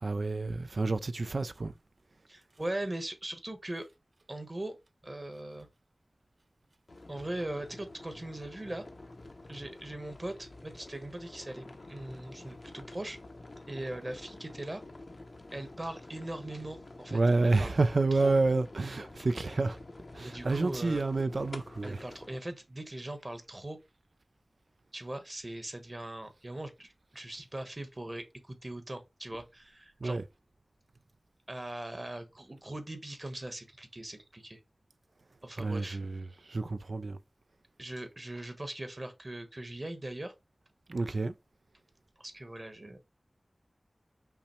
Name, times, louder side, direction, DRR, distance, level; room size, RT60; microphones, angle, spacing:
voice 1, 0.0-1.7 17.1-19.8 20.1-22.0 30.0-30.2 35.6-37.2 40.9-41.3, right 3 dB, 75° right, 0.3 m, -29 dB
voice 2, 2.3-3.9 4.3-4.7 5.0-5.7 7.1-8.8 9.5-13.2 13.7-14.8 15.5-17.7 18.1-18.3 20.2-21.0 21.8-23.8 24.9-30.2 31.5-34.6 35.4-36.0 37.8-40.3 42.2-43.0, right 1 dB, 35° right, 1.1 m, -40 dB
sound 1, 6.9-22.4, left 2 dB, 60° left, 0.7 m, -49 dB
5.7 x 2.1 x 4.3 m
wide cardioid pair, 65°, 0 cm